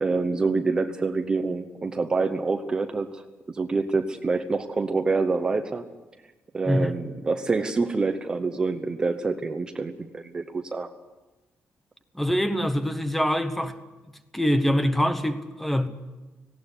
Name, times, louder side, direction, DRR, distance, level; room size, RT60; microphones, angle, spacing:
voice 1, 0.0-3.2 3.5-5.8 6.5-10.9, right 4 dB, 20° right, 0.9 m, -26 dB
voice 2, 12.1-13.8 14.3-15.9, equal, 5° left, 1.1 m, -24 dB
18.5 x 17.5 x 9.8 m
cardioid pair, 180°, 4 cm